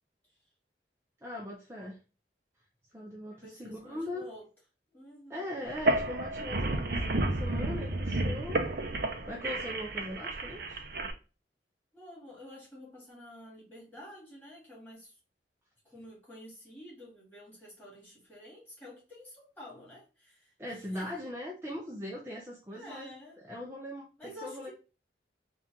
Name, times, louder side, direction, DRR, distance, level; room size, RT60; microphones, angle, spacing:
voice 1, 1.2-2.0 2.9-4.3 5.3-8.6 9.0-10.8 20.6-24.7, left 1 dB, 15° right, 0.6 m, -40 dB
voice 2, 3.3-4.4 4.9-5.5 11.9-15.1 15.8-21.2 22.7-23.4 24.2-24.7, left 1 dB, 10° left, 2.3 m, -50 dB
sound 1, 5.7-11.1, right 2 dB, 55° right, 0.6 m, -31 dB
4.3 x 2.5 x 3.5 m
head